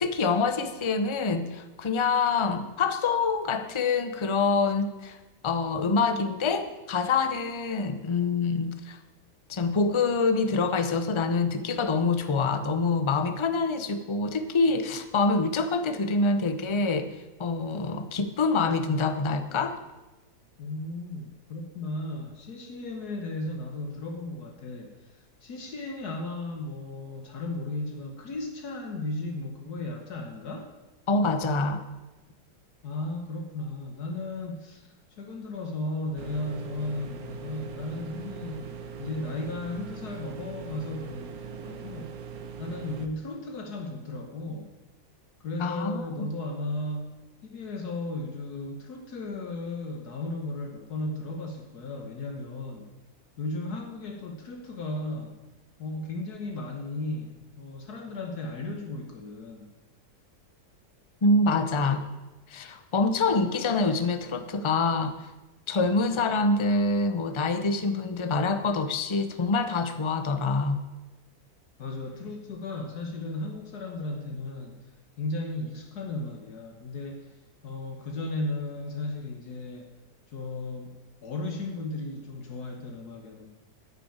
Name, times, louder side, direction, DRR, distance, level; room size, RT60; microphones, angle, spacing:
voice 1, 0.0-5.2 5.4-9.0 9.5-19.8 31.1-31.8 45.6-46.3 61.2-62.0 62.5-65.1 65.7-70.8, left 3 dB, 45° left, 9 dB, 0.3 m, -26 dB
voice 2, 20.6-30.7 32.8-42.2 42.6-44.7 45.4-52.9 53.4-55.4 55.8-59.7 71.8-74.9 75.2-79.9 80.3-80.9 81.2-83.5, left 2 dB, 65° left, 3 dB, 1.7 m, -35 dB
sound 1, 36.2-43.1, right 6 dB, 65° right, 1.3 m, -41 dB
9.5 x 6.9 x 8.7 m, 1.1 s
omnidirectional pair, 1.8 m